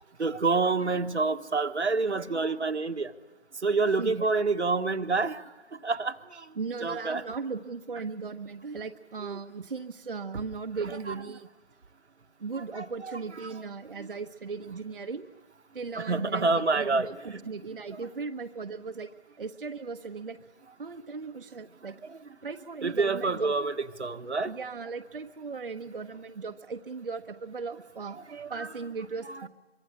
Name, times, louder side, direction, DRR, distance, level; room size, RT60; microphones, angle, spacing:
voice 1, 0.2-3.1 3.6-6.5 6.8-7.2 9.2-9.4 10.9-11.1 12.5-13.5 14.0-14.1 16.0-17.4 22.0-22.2 22.8-24.5 28.3-28.7 29.3-29.4, right 3 dB, 75° right, 8 dB, 1.4 m, -28 dB
voice 2, 4.0-4.3 6.6-11.5 12.4-15.3 15.7-19.1 19.4-20.4 20.8-21.9 22.4-23.5 24.5-28.2 28.5-29.5, right 4 dB, 50° right, 7 dB, 1.0 m, -37 dB
24.5 x 24.0 x 9.9 m, 1.1 s
figure-of-eight pair, 165°, 34 cm